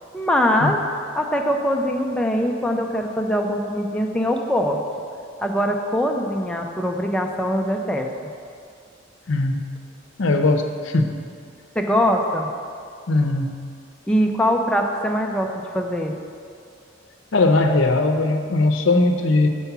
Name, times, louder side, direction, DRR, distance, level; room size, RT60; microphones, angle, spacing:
voice 1, 0.1-0.8 1.1-4.8 5.4-8.1 11.8-12.5 14.1-15.5 15.7-16.1, equal, 5° left, 1 dB, 0.5 m, -22 dB
voice 2, 9.3-9.6 10.2-11.1 13.1-13.5 17.3-19.5, left 2 dB, 80° left, 5 dB, 0.6 m, -19 dB
6.9 x 4.5 x 5.9 m, 2.3 s
head